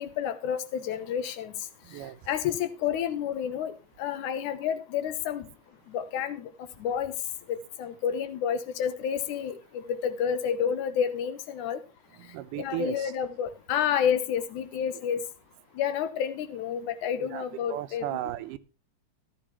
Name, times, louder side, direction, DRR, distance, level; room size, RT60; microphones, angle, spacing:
voice 1, 0.0-1.5 2.3-3.7 4.0-5.5 5.9-6.5 6.8-7.1 7.5-11.8 12.6-15.2 15.8-18.2, left 8 dB, 75° left, 2.4 m, -30 dB
voice 2, 12.3-13.1 17.2-18.6, right 13 dB, 85° right, 2.3 m, -35 dB
13.5 x 12.0 x 2.9 m
omnidirectional pair, 3.6 m